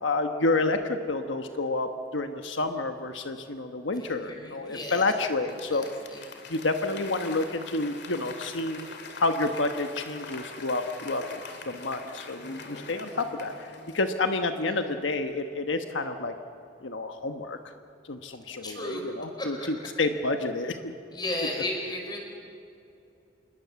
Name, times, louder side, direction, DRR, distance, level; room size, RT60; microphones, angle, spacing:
voice 1, 0.0-5.8 6.5-8.9 9.2-16.3 16.8-17.7 18.0-20.9, left 2 dB, 90° left, 6 dB, 1.2 m, -29 dB
voice 2, 4.0-5.1 5.7-6.2 18.6-19.0 19.4-19.7 21.1-22.2, left 1 dB, 25° left, 2 dB, 4.9 m, -34 dB
Applause / Crowd, 5.3-14.7 15.1-15.2, left 4 dB, 60° left, 2.5 m, -44 dB
27.0 x 21.0 x 7.1 m, 2.6 s
head